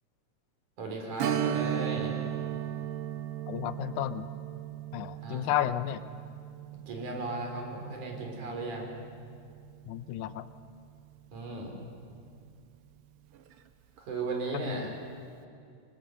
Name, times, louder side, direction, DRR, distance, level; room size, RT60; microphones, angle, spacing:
voice 1, 0.8-2.2 5.2-5.5 6.9-8.9 11.3-11.8 14.0-14.9, right 3 dB, 80° right, 1 dB, 5.3 m, -36 dB
Strum, 1.2-10.4 10.7-10.8 13.3-13.5 14.0-14.1, right 10 dB, 65° right, 1.6 m, -36 dB
voice 2, 3.5-4.3 4.9-6.2 9.9-10.5 14.5-14.9, left 12 dB, 80° left, 12 dB, 2.2 m, -32 dB
26.0 x 23.5 x 6.4 m, 2.4 s
omnidirectional pair, 3.4 m